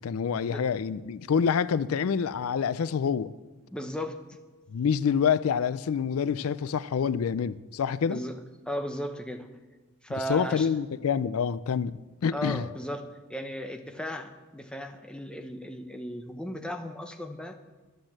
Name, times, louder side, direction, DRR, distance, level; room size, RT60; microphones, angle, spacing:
voice 1, 0.0-3.3 4.7-8.2 10.3-12.6, left 7 dB, 80° left, 0.4 m, -27 dB
voice 2, 3.7-4.2 8.1-8.3 8.7-9.5 10.0-10.7 12.3-17.6, equal, 5° left, 0.8 m, -36 dB
11.5 x 8.9 x 7.4 m
head